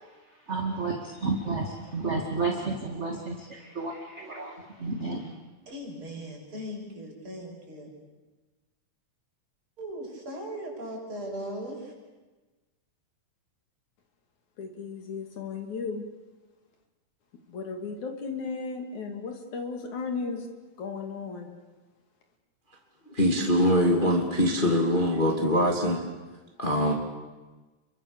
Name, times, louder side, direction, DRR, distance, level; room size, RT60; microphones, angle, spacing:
voice 1, 0.3-5.4, right 3 dB, 25° right, 1 dB, 2.1 m, -32 dB
voice 2, 5.7-7.9 9.8-11.9, equal, 40° right, -1 dB, 7.4 m, -38 dB
voice 3, 14.6-16.0 17.5-20.5 20.8-21.5, left 4 dB, 65° left, 4 dB, 3.9 m, -35 dB
voice 4, 23.1-26.0 26.6-26.9, equal, 15° left, 0 dB, 2.5 m, -23 dB
30.0 x 24.0 x 7.0 m, 1.2 s
omnidirectional pair, 3.6 m